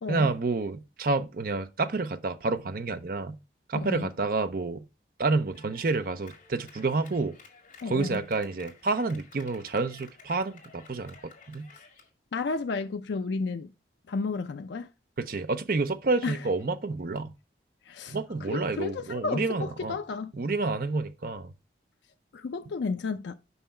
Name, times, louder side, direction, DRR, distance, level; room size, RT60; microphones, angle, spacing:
voice 1, 0.1-3.4 3.7-4.8 5.2-7.4 7.9-11.7 15.2-17.3 18.1-20.0 20.3-21.5, right 3 dB, 50° right, 0.6 m, -29 dB
voice 2, 3.7-4.1 7.8-8.2 11.7-11.8 12.3-13.7 14.1-14.9 16.2-16.4 17.9-20.3 22.3-23.3, left 4 dB, 75° left, 0.4 m, -32 dB
Clapping, 5.5-12.1, left 5 dB, 45° left, 2.1 m, -54 dB
5.6 x 5.5 x 4.3 m
head